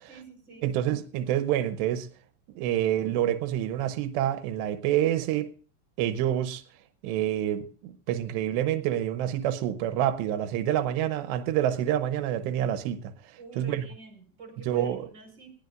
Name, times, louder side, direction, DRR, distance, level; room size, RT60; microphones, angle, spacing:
voice 1, 0.1-0.7 13.4-15.5, right 4 dB, 25° right, 5.3 m, -47 dB
voice 2, 0.6-2.1 2.5-5.5 6.0-6.6 7.0-13.1 13.6-13.8 14.7-15.1, right 11 dB, 90° right, 3.1 m, -27 dB
20.0 x 16.0 x 2.5 m
omnidirectional pair, 4.8 m